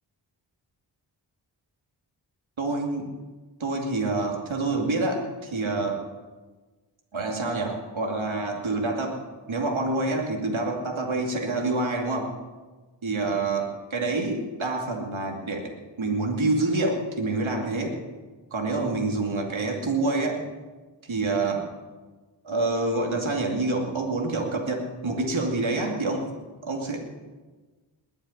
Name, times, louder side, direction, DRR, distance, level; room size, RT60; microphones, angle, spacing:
voice 1, 2.6-3.1 3.6-6.0 7.1-9.2 9.5-12.3 13.0-15.7 16.0-18.0 18.5-20.5 21.0-21.7 22.4-26.3 26.6-27.0, right 2 dB, 90° right, 1 dB, 2.6 m, -27 dB
21.0 x 7.2 x 9.7 m, 1.3 s
wide cardioid pair, 60°, 46 cm